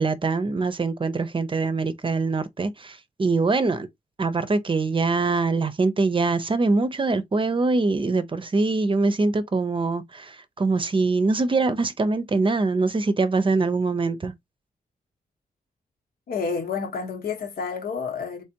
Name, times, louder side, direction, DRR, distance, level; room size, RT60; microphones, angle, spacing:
voice 1, 0.0-3.9 4.2-14.3, right 3 dB, 35° right, 0.6 m, -23 dB
voice 2, 16.3-18.4, left 5 dB, 85° left, 1.1 m, -29 dB
3.3 x 3.2 x 2.8 m
cardioid pair, 65°, 15 cm